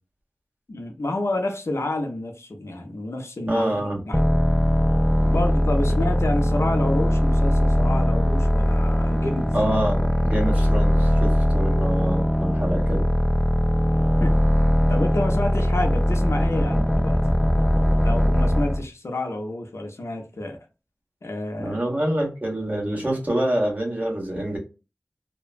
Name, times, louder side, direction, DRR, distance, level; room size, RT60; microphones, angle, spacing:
voice 1, 0.7-3.7 4.1-4.2 5.2-9.5 14.2-14.4 14.9-17.2 18.0-20.6 21.2-21.8, left 2 dB, 75° left, 0.6 m, -29 dB
voice 2, 3.5-4.0 9.5-13.0 21.6-24.6, right 1 dB, 35° right, 1.3 m, -26 dB
sound 1, 4.1-18.8, equal, 5° left, 0.3 m, -20 dB
2.8 x 2.1 x 2.5 m
wide cardioid pair, 50°, 5 cm